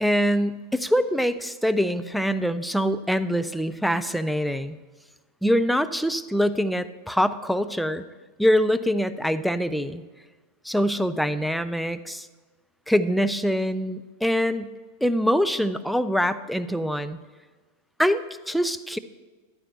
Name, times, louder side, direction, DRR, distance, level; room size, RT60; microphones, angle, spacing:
voice 1, 0.0-4.8 5.4-8.0 8.4-10.0 10.6-12.3 12.9-14.7 15.0-17.2 18.0-19.0, equal, ahead, 11 dB, 0.4 m, -24 dB
14.0 x 11.0 x 2.7 m, 1.3 s
figure-of-eight pair, 90°, 0 cm